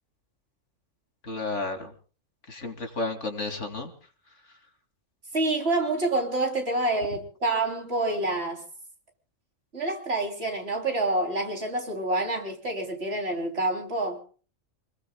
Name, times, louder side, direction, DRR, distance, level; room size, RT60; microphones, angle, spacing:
voice 1, 1.2-1.9 2.5-3.9, left 3 dB, 65° left, 3.0 m, -32 dB
voice 2, 5.3-8.6 9.7-14.2, right 2 dB, 50° right, 3.6 m, -27 dB
28.5 x 21.0 x 2.2 m
omnidirectional pair, 1.3 m